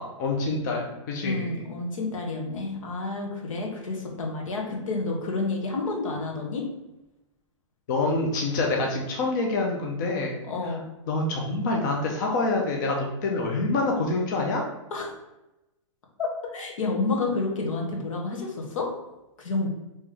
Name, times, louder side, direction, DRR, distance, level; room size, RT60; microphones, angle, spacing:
voice 1, 0.0-1.6 7.9-10.3 11.1-14.6, left 2 dB, 35° left, 0 dB, 0.5 m, -26 dB
voice 2, 1.2-6.6 10.4-10.8 14.9-15.1 16.5-18.9 19.4-19.7, left 3 dB, 80° left, 0 dB, 1.1 m, -30 dB
3.2 x 3.0 x 3.7 m, 0.96 s
hypercardioid pair, 165°, 17 cm